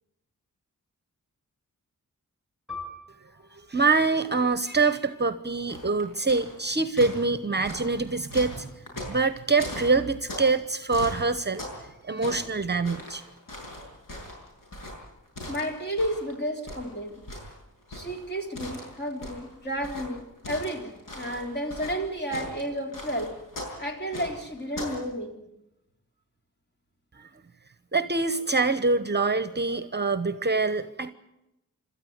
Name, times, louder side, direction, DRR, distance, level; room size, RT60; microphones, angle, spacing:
Piano, 2.7-7.7 8.1-8.2 9.0-9.4, left 3 dB, ahead, 5.8 m, -46 dB
voice 1, 3.5-8.7 9.0-11.6 12.0-13.2 27.2-27.3 27.9-31.1, right 3 dB, 30° right, 13 dB, 1.0 m, -25 dB
sound 1, 5.7-6.6 7.0-10.6 10.9-11.9 12.1-16.3 16.7-25.1, left 1 dB, 75° left, 7.4 m, -39 dB
voice 2, 15.5-17.2 17.9-23.3 23.8-25.3, equal, 30° left, 3 dB, 3.9 m, -32 dB
27.5 x 13.5 x 9.5 m, 0.89 s
wide cardioid pair, 120°, 33 cm